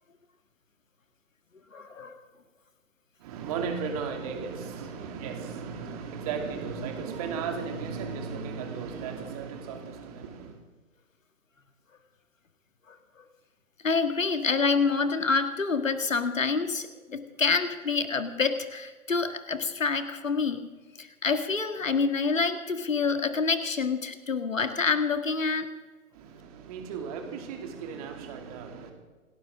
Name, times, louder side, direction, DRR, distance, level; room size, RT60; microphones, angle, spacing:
voice 1, 1.7-2.2 12.9-13.3 13.8-20.7 21.0-25.7, left 4 dB, 65° left, 9 dB, 2.0 m, -27 dB
voice 2, 3.2-10.6 26.1-28.9, right 5 dB, 25° right, 4 dB, 2.6 m, -35 dB
28.0 x 12.5 x 3.7 m, 1.3 s
figure-of-eight pair, 130°, 42 cm